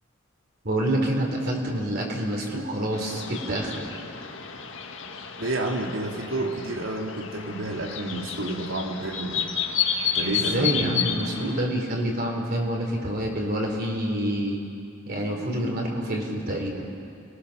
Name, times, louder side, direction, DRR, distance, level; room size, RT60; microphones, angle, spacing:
voice 1, 0.6-3.9 10.3-14.6 15.1-16.9, right 1 dB, 50° right, 0 dB, 3.6 m, -27 dB
sound 1, 2.9-11.6, left 7 dB, 75° left, 1.8 m, -31 dB
voice 2, 5.4-9.5 10.1-11.0, right 1 dB, 90° right, 0 dB, 3.1 m, -30 dB
29.5 x 20.5 x 6.6 m, 2.6 s
head